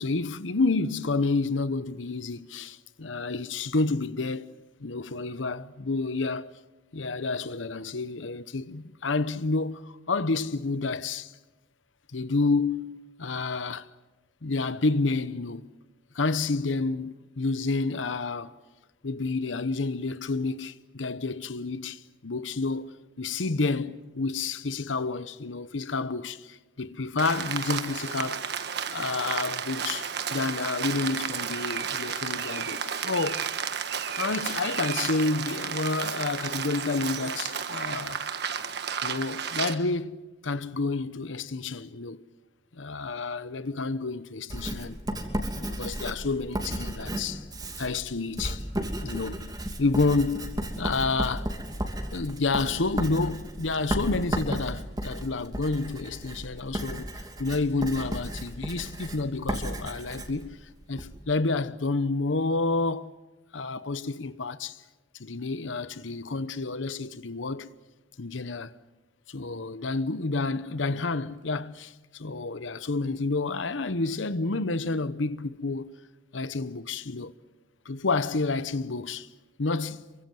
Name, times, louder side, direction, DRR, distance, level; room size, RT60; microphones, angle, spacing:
voice 1, 0.0-4.5 4.8-6.5 6.9-11.3 12.1-13.9 14.4-15.7 16.1-18.6 19.0-28.4 28.9-33.5 34.2-38.3 39.0-40.2 40.4-42.2 42.7-45.0 45.6-47.4 47.8-48.6 49.0-49.5 49.8-51.5 52.1-57.1 57.4-63.1 63.5-64.8 65.2-67.7 68.2-68.7 69.3-75.9 76.3-77.3 77.8-79.3 79.6-80.0, left 3 dB, 85° left, 0.9 m, -29 dB
Rain, 27.2-39.7, right 7 dB, 60° right, 1.4 m, -32 dB
Writing, 44.5-61.1, equal, 20° right, 2.9 m, -34 dB
27.0 x 24.0 x 7.7 m
head